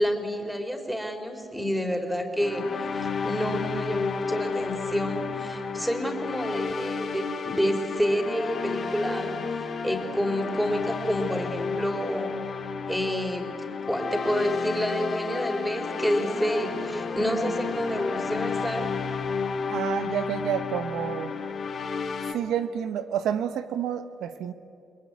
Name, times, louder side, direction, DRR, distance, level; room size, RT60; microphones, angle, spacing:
voice 1, 0.0-18.9, equal, ahead, 5 dB, 4.0 m, -29 dB
sound 1, 2.4-22.3, left 5 dB, 50° left, 2.4 m, -31 dB
voice 2, 19.7-21.3 22.3-24.5, right 9 dB, 80° right, 10 dB, 1.1 m, -29 dB
29.5 x 21.0 x 9.6 m, 2.5 s
cardioid pair, 90°, 0 cm